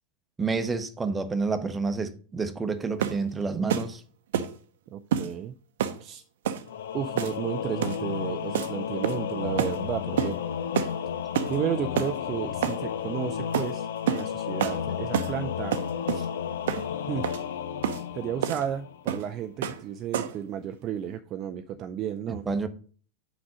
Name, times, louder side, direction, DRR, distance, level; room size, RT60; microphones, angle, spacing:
voice 1, 0.4-4.0 22.3-22.7, right 4 dB, 15° right, 0.9 m, -29 dB
sound 1, 3.0-3.2 3.7-3.9 4.3-4.5 5.1-5.3 5.8-6.0 6.4-6.6 7.2-7.5 7.8-8.0 8.5-8.7 9.0-9.3 9.6-9.8 10.2-10.4 10.7-10.9 11.3-11.6 11.9-12.1 12.6-12.8 13.5-13.7 14.1-14.3 14.6-14.8 15.1-15.3 15.7-16.3 16.7-16.9 17.2-17.4 17.8-18.0 18.4-18.6 19.1-19.3 19.6-19.8 20.1-20.4, right 9 dB, 55° right, 0.8 m, -28 dB
voice 2, 4.9-5.5 6.0-6.2 6.9-10.4 11.5-15.8 16.1-16.3 17.1-17.3 18.1-22.5, right 9 dB, 35° right, 0.4 m, -33 dB
Singing / Musical instrument, 6.7-19.1, left 8 dB, 60° left, 0.6 m, -32 dB
5.9 x 5.2 x 6.2 m
figure-of-eight pair, 90°, 0 cm